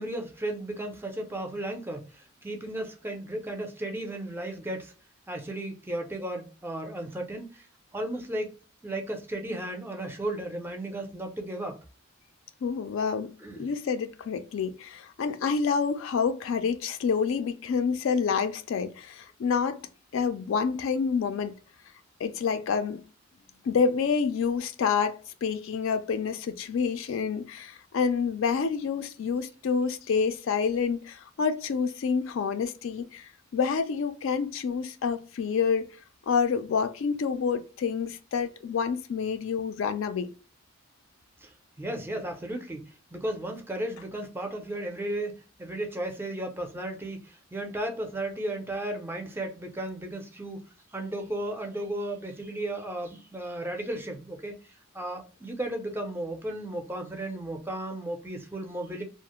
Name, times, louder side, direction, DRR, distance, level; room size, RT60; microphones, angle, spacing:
voice 1, 0.0-4.9 5.3-7.7 7.9-8.5 8.8-11.8 13.4-13.7 41.4-50.6 50.9-59.0, right 1 dB, 10° right, 0.4 m, -35 dB
voice 2, 12.6-13.3 13.6-19.8 20.1-21.5 22.2-23.0 23.6-25.1 25.4-35.9 36.3-40.3, left 6 dB, 65° left, 0.3 m, -28 dB
2.4 x 2.0 x 2.8 m
head